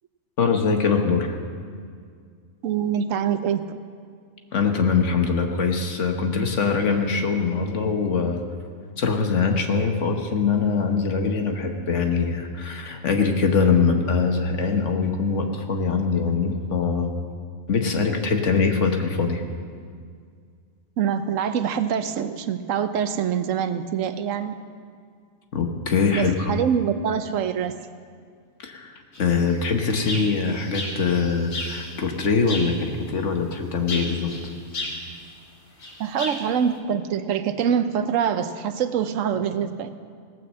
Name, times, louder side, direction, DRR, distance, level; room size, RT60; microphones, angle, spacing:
voice 1, 0.4-1.4 4.5-8.4 9.0-17.1 17.7-19.4 25.5-26.6 28.6-34.3, left 5 dB, 65° left, 4 dB, 1.4 m, -23 dB
voice 2, 2.6-3.8 21.0-24.6 26.1-27.8 36.0-40.0, right 8 dB, 75° right, 11 dB, 1.0 m, -25 dB
sound 1, 29.1-31.9 32.5-32.9 33.9-35.2 35.8-36.5, left 2 dB, 80° left, 2.4 m, -34 dB
17.5 x 6.2 x 7.5 m, 2.1 s
omnidirectional pair, 1.4 m